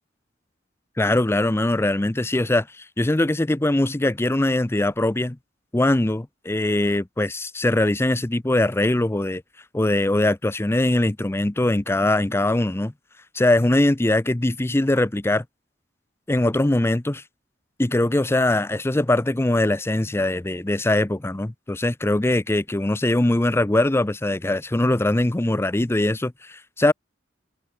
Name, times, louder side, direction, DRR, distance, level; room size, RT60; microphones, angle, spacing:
voice 1, 1.0-5.4 5.7-9.4 9.7-12.9 13.3-15.4 16.3-17.2 17.8-26.9, left 1 dB, 15° left, 0.5 m, -21 dB
head